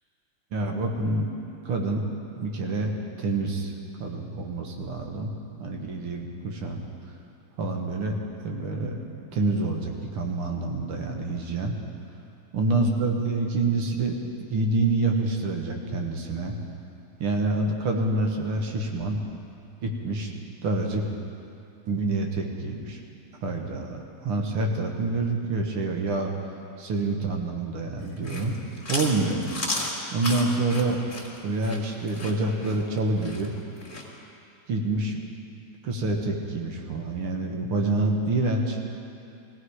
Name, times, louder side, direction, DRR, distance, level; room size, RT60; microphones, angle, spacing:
voice 1, 0.5-1.3 1.7-2.0 2.4-3.7 4.0-5.3 5.6-6.8 7.6-8.2 8.4-9.0 9.3-11.8 12.5-14.1 14.5-16.5 17.2-19.2 19.8-21.0 21.9-23.0 23.4-26.4 26.8-28.6 28.9-29.4 30.1-31.0 31.4-33.5 34.7-35.2 35.8-38.8, right 2 dB, 85° right, 1 dB, 2.4 m, -27 dB
Chewing mastication, 28.1-34.1, left 2 dB, 25° left, 2.3 m, -34 dB
17.0 x 17.0 x 4.8 m, 2.6 s
omnidirectional pair, 2.4 m